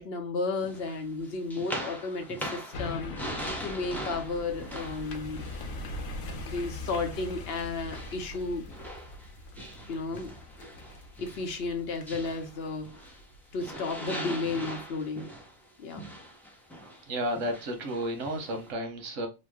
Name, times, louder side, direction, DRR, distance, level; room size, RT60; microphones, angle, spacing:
voice 1, 0.0-3.1 3.6-5.5 6.5-8.7 9.9-10.3 11.2-13.1 13.5-15.3 15.8-16.0, left 3 dB, 60° left, 0.8 m, -33 dB
sound 1, 0.6-6.7 7.1-13.3 13.6-18.7, equal, ahead, 0.4 m, -41 dB
sound 2, 2.7-14.2 14.6-14.7, left 2 dB, 80° left, 1.0 m, -42 dB
voice 2, 17.1-19.3, equal, 90° right, 1.2 m, -32 dB
3.0 x 2.0 x 3.4 m
omnidirectional pair, 1.3 m